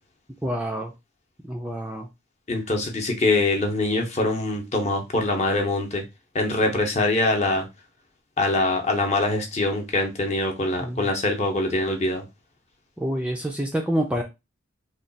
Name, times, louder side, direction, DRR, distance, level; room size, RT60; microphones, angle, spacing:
voice 1, 0.4-0.9 1.5-2.1 10.8-11.1 13.0-14.2, equal, 5° right, 0.4 m, -27 dB
voice 2, 2.5-6.0 6.3-7.6 8.4-12.2, left 2 dB, 35° left, 0.8 m, -23 dB
3.2 x 2.3 x 3.9 m
head